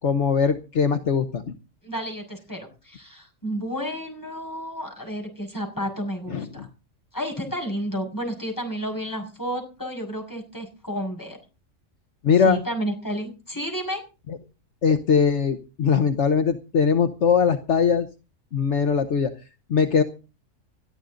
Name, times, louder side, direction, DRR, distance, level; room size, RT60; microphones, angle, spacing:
voice 1, 0.0-1.4 6.3-6.7 12.2-12.6 14.3-14.4 14.8-18.1 18.5-19.3 19.7-20.0, left 6 dB, 65° left, 8 dB, 1.3 m, -21 dB
voice 2, 1.8-6.7 7.1-11.4 12.4-14.0, equal, 15° left, 1 dB, 5.8 m, -31 dB
20.0 x 13.0 x 3.8 m, 0.33 s
omnidirectional pair, 1.3 m